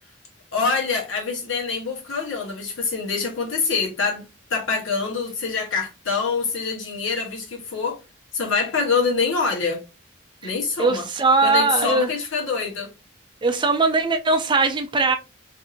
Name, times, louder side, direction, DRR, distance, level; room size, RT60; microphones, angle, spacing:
voice 1, 0.5-4.2 4.5-8.0 8.3-9.8 10.4-11.0 11.4-12.9, left 5 dB, 70° left, 1.0 m, -25 dB
voice 2, 10.8-12.1 13.4-15.2, right 3 dB, 25° right, 0.4 m, -20 dB
2.6 x 2.6 x 2.4 m
head